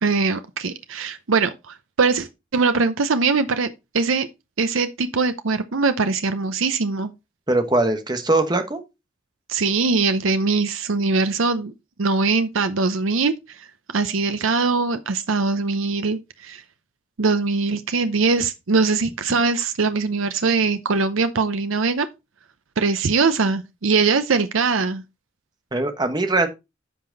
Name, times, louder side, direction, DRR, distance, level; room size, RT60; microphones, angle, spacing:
voice 1, 0.0-4.3 4.6-7.1 9.5-11.7 12.0-16.6 17.2-22.1 22.8-25.0, right 4 dB, 85° right, 0.7 m, -22 dB
voice 2, 7.5-8.8 25.7-26.5, right 2 dB, 20° right, 1.2 m, -21 dB
10.0 x 5.8 x 4.0 m
head